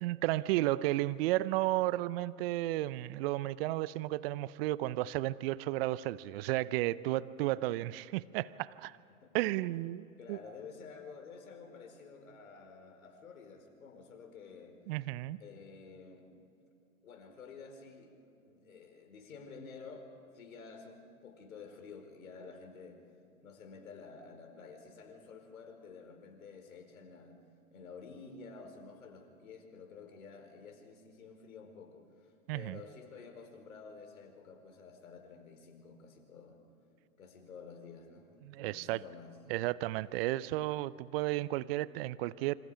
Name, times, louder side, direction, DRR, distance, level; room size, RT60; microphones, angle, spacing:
voice 1, 0.0-9.0 9.3-10.4 14.9-15.4 32.5-32.8 38.4-39.0 39.5-42.5, right 16 dB, 45° right, 18 dB, 0.7 m, -33 dB
voice 2, 10.2-14.7 15.4-16.3 17.0-18.1 18.4-20.1 20.3-23.0 23.4-27.4 27.7-36.6 37.2-39.7, left 5 dB, 75° left, 4 dB, 5.1 m, -51 dB
27.5 x 26.5 x 5.1 m, 2.6 s
hypercardioid pair, 110°, 43 cm